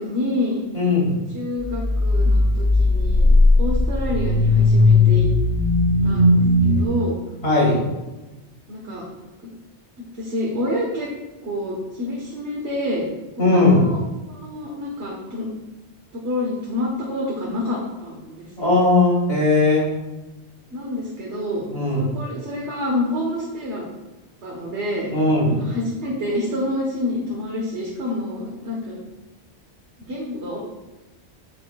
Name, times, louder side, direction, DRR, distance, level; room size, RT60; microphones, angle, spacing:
voice 1, 0.0-0.6 1.3-3.3 3.6-5.3 6.0-7.2 8.7-9.0 9.4-9.5 10.0-11.1 11.4-13.0 13.5-14.0 14.3-15.5 16.1-18.7 20.7-21.6 21.9-23.8 24.4-25.1 25.5-29.0 30.0-30.6, left 1 dB, 80° right, -3 dB, 1.5 m, -28 dB
voice 2, 0.7-1.2 7.4-7.8 13.4-13.9 18.6-19.8 21.7-22.0 25.1-25.6, left 2 dB, 60° left, -5 dB, 3.0 m, -18 dB
sound 1, 1.6-6.9, left 2 dB, 40° right, 1.3 m, -17 dB
8.8 x 7.6 x 2.3 m, 1.1 s
omnidirectional pair, 1.1 m